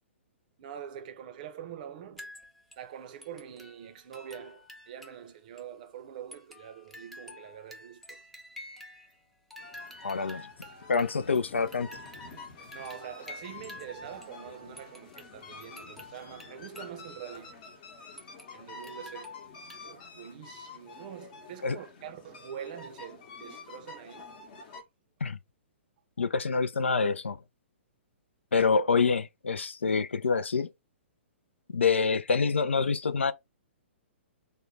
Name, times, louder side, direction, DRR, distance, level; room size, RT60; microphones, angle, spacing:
voice 1, 0.6-2.3 2.8-8.2 12.7-17.5 18.5-19.3 19.8-24.3, right 9 dB, 45° right, 0.6 m, -44 dB
sound 1, 2.2-2.9 3.2-5.3 5.6-5.7 6.3-9.2 9.5-14.4 14.8-17.0 17.3-17.4 18.2-19.8, left 1 dB, ahead, 0.5 m, -49 dB
sound 2, 9.6-24.8, left 3 dB, 45° left, 0.9 m, -48 dB
voice 2, 10.0-10.5 10.9-11.9 21.6-21.8 25.2-25.4 26.2-27.4 28.5-30.7 31.7-33.3, left 5 dB, 75° left, 0.4 m, -26 dB
3.7 x 2.1 x 3.0 m
figure-of-eight pair, 120°, 7 cm